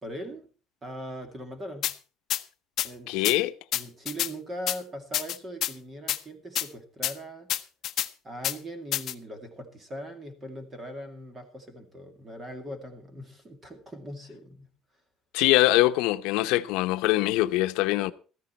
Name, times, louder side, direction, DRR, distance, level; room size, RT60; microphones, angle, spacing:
voice 1, 0.0-0.5 0.8-1.9 2.8-3.3 3.7-7.5 8.2-14.7, equal, 20° right, 2.3 m, -40 dB
sound 1, 1.8-1.9 2.3-2.4 2.8-2.9 3.2-3.4 3.7-4.3 4.7-4.8 5.1-5.7 6.1-6.2 6.6-6.7 7.0-7.1 7.5-8.1 8.4-8.6 8.9-9.1, left 12 dB, 45° left, 0.8 m, -28 dB
voice 2, 3.1-3.5 15.3-18.1, left 17 dB, 90° left, 0.8 m, -23 dB
14.0 x 13.5 x 4.4 m
cardioid pair, 165°, 0 cm